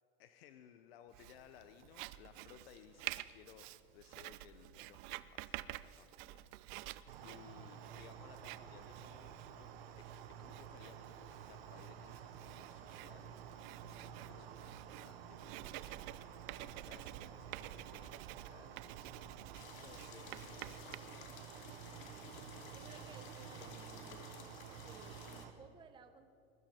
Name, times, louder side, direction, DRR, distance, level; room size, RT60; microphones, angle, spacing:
voice 1, 0.2-3.7 3.9-7.0 7.2-9.7 10.0-10.1 10.4-16.1 16.5-19.3 19.7-21.4, left 9 dB, 85° left, 9 dB, 0.9 m, -61 dB
Writing, 1.1-21.0, right 17 dB, 55° right, 0.6 m, -50 dB
sound 1, 7.1-25.5, right 8 dB, 90° right, 1.3 m, -52 dB
sound 2, 19.5-25.5, left 6 dB, 55° left, 1.8 m, -55 dB
voice 2, 22.7-24.2 24.7-26.3, right 5 dB, 15° right, 7 dB, 0.9 m, -58 dB
22.0 x 13.0 x 4.4 m, 2.4 s
supercardioid pair, 135°, 29 cm